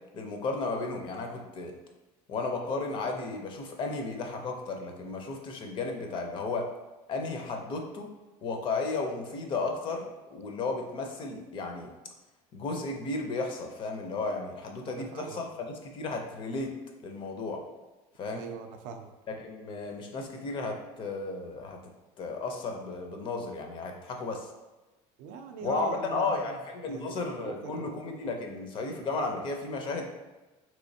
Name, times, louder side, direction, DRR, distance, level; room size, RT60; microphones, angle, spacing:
voice 1, 0.1-1.7 2.3-6.7 7.1-8.1 8.4-11.9 12.5-16.7 17.0-17.6 18.2-18.5 19.3-21.8 22.2-24.5 25.6-30.1, left 3 dB, 40° left, 3 dB, 0.5 m, -34 dB
voice 2, 14.9-15.4 18.3-19.1 25.2-26.6 26.8-27.2 27.5-27.9, right 6 dB, 75° right, 6 dB, 0.4 m, -40 dB
3.4 x 3.0 x 2.7 m, 1.1 s
cardioid pair, 145°, 13 cm